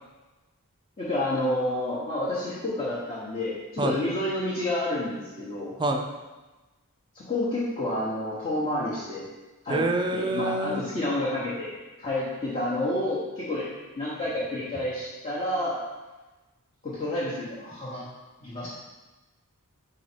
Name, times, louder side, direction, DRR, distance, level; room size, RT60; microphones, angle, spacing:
voice 1, 1.0-5.7 7.1-9.2 9.6-9.8 10.1-11.7 12.0-13.7 14.0-15.8 16.8-18.0 18.4-18.7, left 1 dB, 30° left, -9 dB, 1.1 m, -29 dB
voice 2, 9.7-10.9, right 2 dB, 20° right, 4 dB, 0.5 m, -26 dB
5.1 x 4.5 x 4.5 m, 1.2 s
head